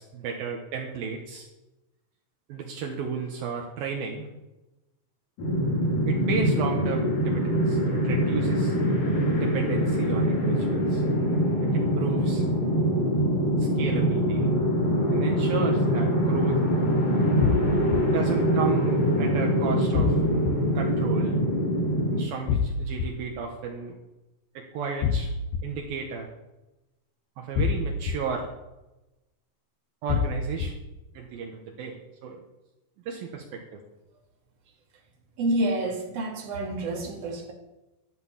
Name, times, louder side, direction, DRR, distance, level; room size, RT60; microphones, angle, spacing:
voice 1, 0.0-1.5 2.5-4.3 6.1-8.8 9.4-11.0 11.6-12.4 13.6-14.6 15.1-16.6 18.0-20.2 20.7-21.4 22.1-24.0 24.5-25.3 25.6-26.3 27.4-28.5 30.0-30.7 31.1-32.4 33.1-33.8, right 5 dB, 70° right, 2 dB, 3.1 m, -33 dB
sound 1, 5.4-22.2, equal, 55° left, 6.1 m, -24 dB
sound 2, 17.4-18.0 19.9-20.5 22.5-23.1 25.0-25.6 27.6-28.1 30.1-30.7, left 7 dB, 80° left, 3.2 m, -25 dB
voice 2, 35.4-37.5, right 1 dB, 40° right, 0 dB, 3.4 m, -28 dB
13.0 x 11.5 x 7.3 m, 1.0 s
omnidirectional pair, 4.5 m